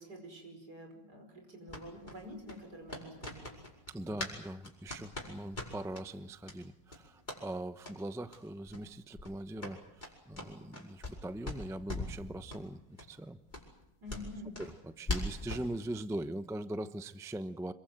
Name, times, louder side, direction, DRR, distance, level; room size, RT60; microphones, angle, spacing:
voice 1, 0.0-3.6 14.0-14.6, left 1 dB, 60° right, 4 dB, 5.9 m, -48 dB
sound 1, 1.7-4.4 4.6-6.0 6.4-6.6 6.9-7.4 7.8-8.0 8.3-8.4 8.7-8.8 9.1-11.2 11.4-12.2 12.5-12.6 13.0-13.1 13.5-15.7, left 2 dB, 25° left, 5.4 m, -41 dB
voice 2, 3.9-12.8 13.1-13.4 14.6-17.7, right 1 dB, 5° right, 11 dB, 0.3 m, -41 dB
26.5 x 22.5 x 8.0 m, 0.87 s
omnidirectional pair, 1.9 m